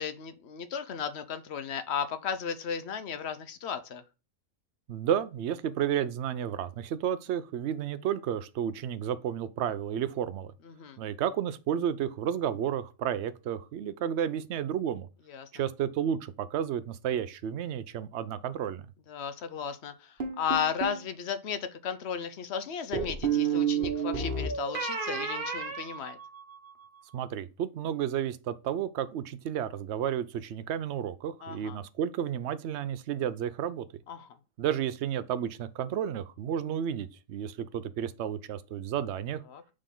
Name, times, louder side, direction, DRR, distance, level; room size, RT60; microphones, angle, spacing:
voice 1, 0.0-4.0 10.7-11.0 15.3-15.5 19.1-19.9 20.4-26.2 31.4-31.8 34.1-34.3 39.5-39.6, left 7 dB, 60° left, 0.9 m, -34 dB
voice 2, 4.9-10.5 11.0-15.1 15.5-18.8 27.1-33.9 34.6-39.4, right 9 dB, 65° right, 0.8 m, -32 dB
sound 1, 20.2-21.0 22.9-26.7, right 6 dB, 40° right, 1.3 m, -31 dB
6.6 x 3.8 x 3.8 m
omnidirectional pair, 1.4 m